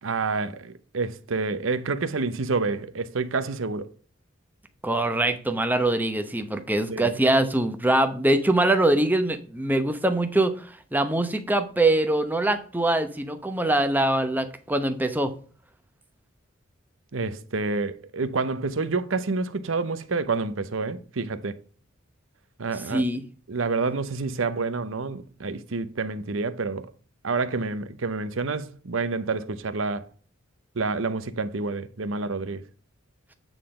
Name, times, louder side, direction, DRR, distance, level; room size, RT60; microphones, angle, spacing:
voice 1, 0.0-3.9 6.9-7.0 17.1-21.6 22.6-23.0 23.5-26.9 27.2-30.1 30.8-32.6, right 4 dB, 70° right, 0.7 m, -28 dB
voice 2, 4.8-15.3 22.9-23.2, right 1 dB, 10° right, 0.8 m, -23 dB
9.1 x 3.9 x 4.9 m
head